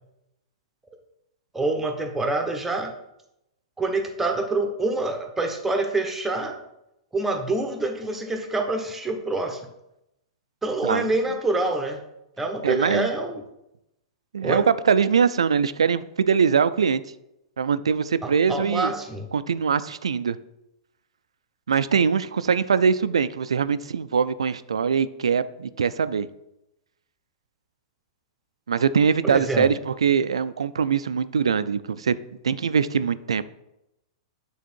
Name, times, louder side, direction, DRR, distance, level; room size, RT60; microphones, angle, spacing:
voice 1, 1.5-2.9 3.8-6.6 7.1-9.7 10.6-12.0 12.4-13.4 14.4-14.6 18.2-19.3 29.3-29.7, right 2 dB, 10° right, 4 dB, 1.0 m, -26 dB
voice 2, 12.6-13.1 14.3-17.0 17.6-18.9 19.3-20.4 21.7-26.3 28.7-32.2 32.4-33.4, right 6 dB, 85° right, 15 dB, 0.3 m, -22 dB
8.3 x 3.7 x 4.4 m, 0.86 s
hypercardioid pair, 110°, 3 cm